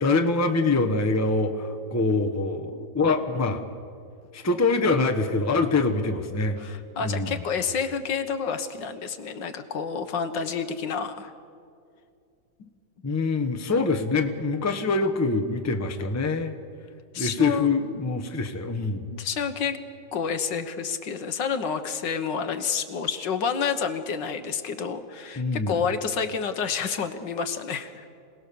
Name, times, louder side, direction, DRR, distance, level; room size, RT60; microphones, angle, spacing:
voice 1, 0.0-3.6 4.3-6.6 7.0-7.4 13.0-16.6 17.2-19.1 25.4-25.8, left 3 dB, 10° left, 6 dB, 0.9 m, -24 dB
voice 2, 6.6-11.3 17.1-17.7 19.1-19.8 20.1-28.1, left 6 dB, 70° left, 8 dB, 1.8 m, -29 dB
26.5 x 18.5 x 6.9 m, 2.4 s
omnidirectional pair, 2.0 m